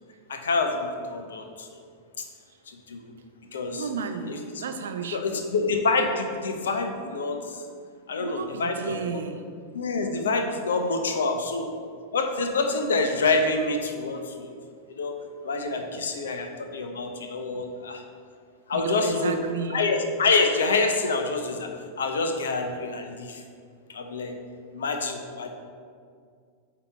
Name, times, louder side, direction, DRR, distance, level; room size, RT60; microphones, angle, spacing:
voice 1, 0.3-1.8 2.2-2.3 2.7-3.1 3.5-3.8 4.6-4.7 5.1-7.6 8.1-9.2 9.7-11.7 12.1-14.5 14.9-15.1 15.4-18.0 18.7-19.4 19.7-21.7 22.0-23.4 23.9-24.3 24.7-25.5, left 3 dB, 65° left, 5 dB, 0.6 m, -27 dB
voice 2, 3.7-5.4 8.2-9.4 11.1-11.5 12.6-13.1 14.5-14.9 15.7-16.4 16.9-17.0 18.7-19.9, right 5 dB, 65° right, 7 dB, 0.5 m, -34 dB
8.5 x 2.9 x 4.5 m, 2.1 s
figure-of-eight pair, 90°, 0 cm